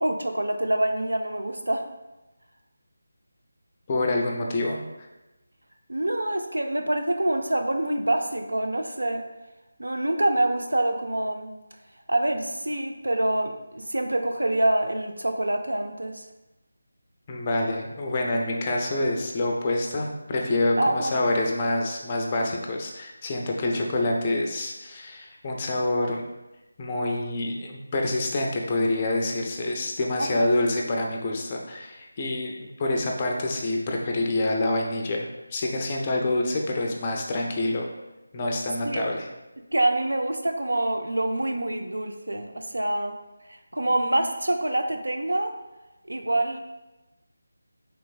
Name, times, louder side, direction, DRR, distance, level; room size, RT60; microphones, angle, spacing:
voice 1, 0.0-1.9 5.9-9.3 9.8-11.5 12.1-16.2 20.8-21.1 30.2-30.5 38.8-39.1 39.7-43.1 43.5-45.5 46.1-46.6, right 1 dB, 80° right, 5 dB, 0.4 m, -26 dB
voice 2, 3.9-4.8 17.3-26.2 26.8-37.9 38.3-39.3, left 2 dB, 25° left, 0 dB, 0.4 m, -27 dB
3.3 x 3.1 x 2.3 m, 1.0 s
figure-of-eight pair, 160°, 0 cm